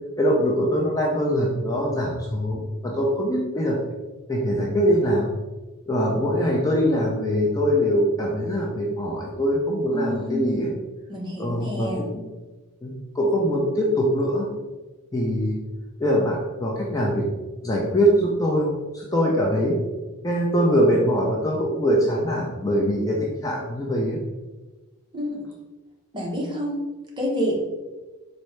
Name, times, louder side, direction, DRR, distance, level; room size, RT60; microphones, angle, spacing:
voice 1, 0.2-3.8 4.3-5.3 5.9-10.7 11.4-12.3 12.8-14.5 15.1-15.6 16.0-17.3 17.6-19.8 20.2-24.2, equal, 15° left, -3 dB, 0.5 m, -23 dB
voice 2, 9.9-10.7 11.1-12.1 25.1-25.4 26.1-26.8 27.2-27.6, equal, 20° right, -3 dB, 0.8 m, -28 dB
4.2 x 2.7 x 3.2 m, 1.2 s
head